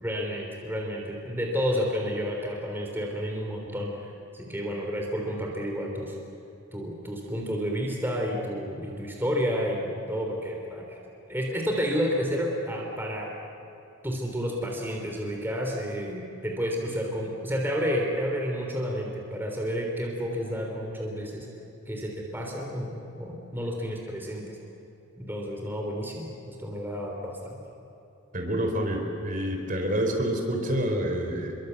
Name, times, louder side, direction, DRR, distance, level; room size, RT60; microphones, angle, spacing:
voice 1, 0.0-6.2 6.7-11.0 11.3-13.3 14.0-21.5 21.9-24.4 25.2-27.6, equal, 10° right, 0 dB, 3.5 m, -30 dB
voice 2, 28.3-31.6, equal, 40° right, 3 dB, 4.1 m, -28 dB
29.5 x 23.0 x 8.2 m, 3.0 s
head